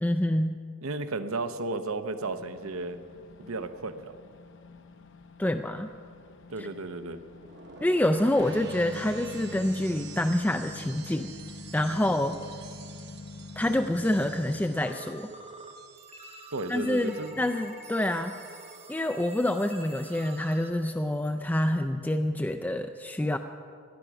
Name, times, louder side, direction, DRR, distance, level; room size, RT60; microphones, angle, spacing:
voice 1, 0.0-0.6 5.4-5.9 6.6-6.7 7.8-11.3 11.7-12.4 13.6-15.3 16.7-18.4 18.9-23.4, left 1 dB, 10° left, 6 dB, 0.4 m, -27 dB
voice 2, 0.8-3.0 3.4-4.1 6.5-7.2 16.5-17.5, right 3 dB, 75° right, 10 dB, 0.8 m, -34 dB
sound 1, 2.2-14.7, left 3 dB, 60° left, 0.7 m, -45 dB
sound 2, 7.3-17.4 17.7-18.1, right 6 dB, 50° right, 1.0 m, -49 dB
sound 3, 14.8-15.7 16.0-20.7, right 3 dB, 30° right, 1.0 m, -47 dB
17.5 x 11.5 x 6.0 m, 2.3 s
head